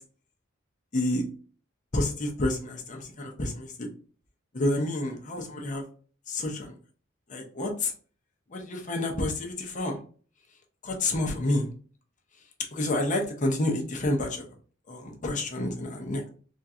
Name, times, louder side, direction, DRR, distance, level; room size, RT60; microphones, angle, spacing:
voice 1, 0.9-1.2 1.9-3.9 4.5-5.8 6.3-6.7 7.3-7.9 8.5-10.0 10.8-11.7 12.7-14.4 14.9-16.3, left 1 dB, 40° left, 1 dB, 0.8 m, -29 dB
3.6 x 2.4 x 2.7 m, 0.42 s
head